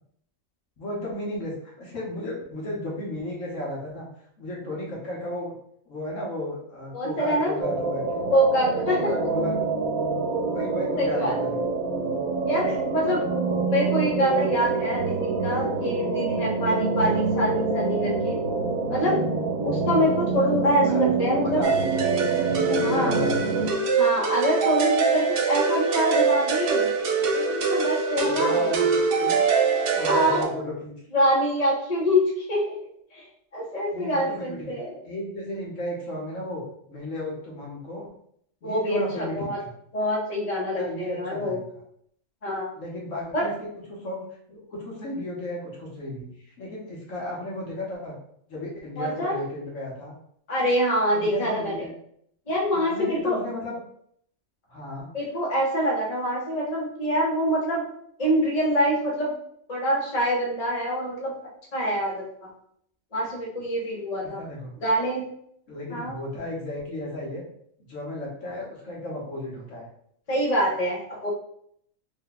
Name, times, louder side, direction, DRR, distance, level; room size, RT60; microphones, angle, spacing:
voice 1, 0.8-4.1 4.4-5.5 5.9-8.2 8.9-9.6 10.4-11.6 20.9-21.7 22.4-23.5 28.2-29.4 29.9-31.2 33.9-34.7 35.0-38.1 38.6-39.7 40.7-41.6 42.8-43.7 44.0-44.2 44.5-48.1 48.5-50.2 51.1-51.9 52.7-53.7 54.7-55.1 64.2-64.8 65.7-67.4 67.9-69.9, left 1 dB, 65° left, -3 dB, 1.4 m, -34 dB
voice 2, 6.9-7.5 8.3-9.4 11.0-11.3 12.4-13.3 13.6-18.4 18.9-19.2 19.6-21.7 22.8-23.2 23.9-26.9 27.3-28.6 30.0-30.7 31.1-32.8 33.1-33.2 33.5-35.0 38.6-39.6 39.9-41.6 42.4-42.7 43.3-43.5 49.0-49.4 50.5-51.9 52.5-53.4 55.1-57.8 58.2-59.4 59.7-61.3 61.7-62.5 63.1-64.4 64.8-65.3 65.9-66.1 70.3-71.3, equal, 35° left, -3 dB, 0.8 m, -25 dB
sound 1, 7.6-23.7, right 3 dB, 85° right, 1.0 m, -26 dB
sound 2, 21.6-30.4, right 5 dB, 65° right, 0.6 m, -23 dB
3.3 x 2.2 x 3.9 m, 0.68 s
omnidirectional pair, 1.4 m